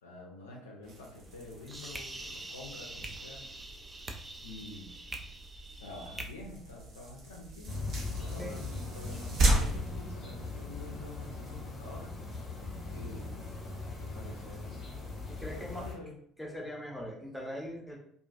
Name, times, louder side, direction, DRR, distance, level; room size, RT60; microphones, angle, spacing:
voice 1, 0.0-3.5 4.4-4.9 5.8-7.8 8.1-12.2 12.9-13.4 14.0-14.8 15.5-16.1, left 2 dB, 80° left, -2 dB, 0.4 m, -47 dB
sound 1, 0.8-11.0, right 2 dB, 50° right, 0.7 m, -36 dB
sound 2, 1.3-6.3, right 2 dB, 20° right, 0.4 m, -44 dB
sound 3, 7.7-15.9, left 3 dB, 35° left, 1.0 m, -40 dB
voice 2, 15.3-15.8 16.4-18.0, equal, 5° left, -2 dB, 0.8 m, -41 dB
2.4 x 2.3 x 2.4 m, 0.65 s
figure-of-eight pair, 55°, 0 cm